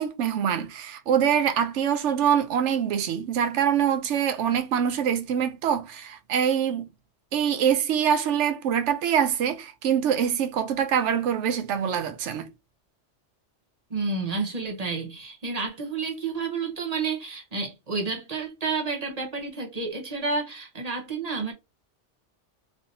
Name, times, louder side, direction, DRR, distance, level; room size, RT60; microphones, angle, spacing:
voice 1, 0.0-6.9 7.3-12.5, right 8 dB, 80° right, 0.9 m, -24 dB
voice 2, 13.9-21.5, right 4 dB, 35° right, 0.8 m, -30 dB
3.2 x 2.7 x 2.6 m
omnidirectional pair, 1.2 m